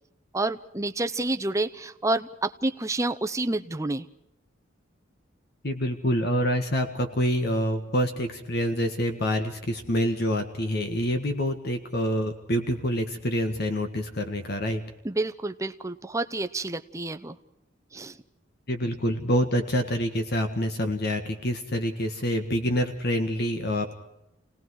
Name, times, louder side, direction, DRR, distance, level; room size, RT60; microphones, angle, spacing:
voice 1, 0.3-4.1 15.0-17.4 17.9-18.2, right 2 dB, 15° right, 9 dB, 0.8 m, -29 dB
voice 2, 5.6-14.8 18.7-24.0, equal, 55° left, 6 dB, 1.7 m, -26 dB
29.5 x 19.0 x 4.8 m, 0.87 s
head